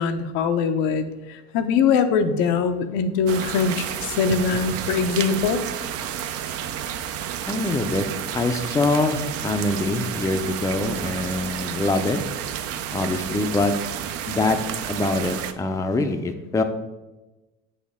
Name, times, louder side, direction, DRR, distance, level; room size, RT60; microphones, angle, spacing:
voice 1, 0.0-5.6, left 6 dB, 70° left, 8 dB, 0.6 m, -22 dB
sound 1, 3.3-15.5, right 9 dB, 50° right, 0.5 m, -31 dB
voice 2, 7.5-8.0 8.3-12.2 12.9-13.7 14.3-14.6 14.9-16.6, left 2 dB, 10° left, 6 dB, 0.5 m, -24 dB
7.2 x 4.3 x 3.5 m, 1.1 s
hypercardioid pair, 80°, 31 cm